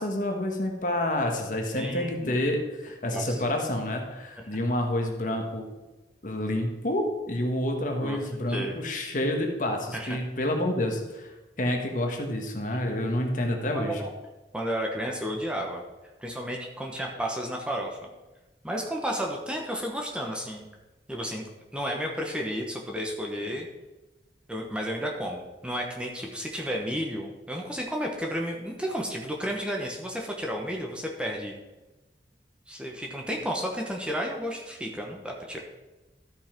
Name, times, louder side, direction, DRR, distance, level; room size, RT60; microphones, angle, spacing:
voice 1, 0.0-5.7 6.2-14.0, left 1 dB, 50° left, 3 dB, 1.4 m, -28 dB
voice 2, 1.8-2.4 3.1-3.4 8.0-8.2 8.5-8.8 9.9-10.2 13.7-14.1 14.5-15.8 16.2-18.0 18.6-20.7 21.1-21.4 21.7-23.7 24.5-31.5 32.7-35.6, equal, 5° right, 0 dB, 1.0 m, -32 dB
12.5 x 5.6 x 4.5 m, 1.1 s
head